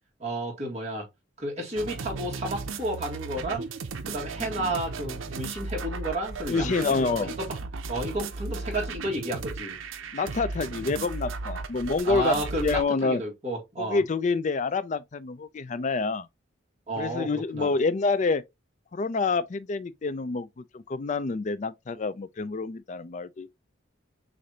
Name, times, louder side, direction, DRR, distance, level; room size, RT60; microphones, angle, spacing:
voice 1, 0.2-1.1 1.4-3.7 4.0-7.3 7.9-9.8 12.0-14.0 16.9-17.7, right 1 dB, 35° right, 1.9 m, -32 dB
sound 1, 1.8-12.8, right 4 dB, 90° right, 0.6 m, -36 dB
voice 2, 6.5-7.4 10.1-13.2 13.8-16.3 17.0-18.4 18.9-23.5, left 4 dB, 40° left, 0.4 m, -27 dB
6.4 x 2.6 x 2.8 m
head